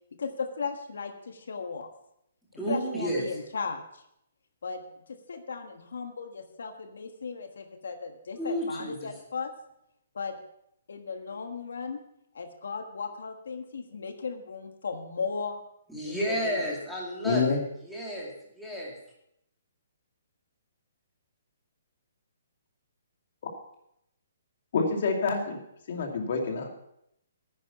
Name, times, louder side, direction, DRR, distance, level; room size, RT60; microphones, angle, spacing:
voice 1, 0.1-1.9 2.7-4.0 4.6-9.5 10.1-10.4 10.9-12.0 12.3-15.6 16.0-16.6, left 5 dB, 85° left, 6 dB, 1.4 m, -36 dB
voice 2, 2.6-3.3 8.4-9.1 15.9-18.9, equal, ahead, -5 dB, 2.4 m, -32 dB
voice 3, 17.2-17.6 24.7-25.6 25.9-26.7, left 4 dB, 50° left, 2 dB, 2.4 m, -27 dB
10.5 x 9.8 x 5.7 m, 0.77 s
hypercardioid pair, 170°, 0 cm